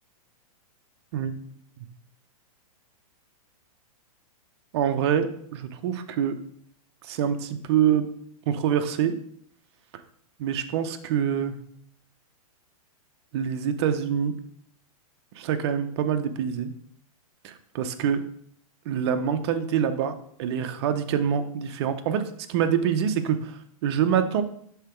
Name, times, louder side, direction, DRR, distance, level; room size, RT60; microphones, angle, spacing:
voice 1, 4.7-6.3 7.0-8.1 8.5-9.2 10.4-11.5 13.3-14.3 15.4-16.7 17.4-18.2 18.9-22.2 22.5-24.4, right 8 dB, 45° right, 9 dB, 0.6 m, -25 dB
5.7 x 3.8 x 4.4 m, 0.65 s
hypercardioid pair, 150°, 19 cm